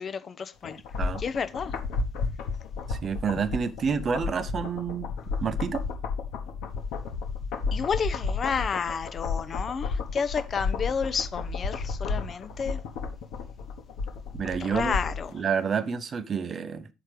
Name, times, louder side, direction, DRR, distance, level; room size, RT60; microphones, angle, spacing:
voice 1, 0.0-0.8 1.2-1.8 7.7-12.8 14.6-15.4, left 6 dB, 35° left, 0.7 m, -31 dB
sound 1, 0.6-15.3 15.6-15.7, left 4 dB, 55° left, 1.2 m, -32 dB
voice 2, 2.9-5.1 5.4-5.9 14.3-14.9 15.3-16.9, right 6 dB, 35° right, 0.7 m, -29 dB
8.6 x 4.4 x 4.9 m
figure-of-eight pair, 60°, 0 cm